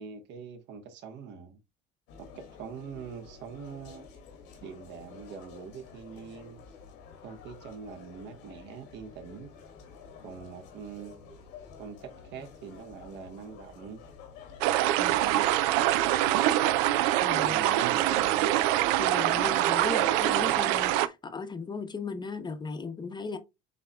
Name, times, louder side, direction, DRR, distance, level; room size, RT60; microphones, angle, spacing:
voice 1, 0.0-1.6 2.2-4.1 4.6-6.6 7.2-9.5 10.2-11.5 11.8-14.0 15.1-15.8 17.4-18.5, right 6 dB, 65° right, 1.3 m, -43 dB
sound 1, 2.1-19.6, left 6 dB, 90° left, 2.2 m, -50 dB
sound 2, 14.6-21.1, right 14 dB, 85° right, 0.5 m, -24 dB
voice 2, 17.2-17.6 19.0-23.4, left 4 dB, 20° left, 0.8 m, -36 dB
7.8 x 2.9 x 2.2 m
supercardioid pair, 100°, 20 cm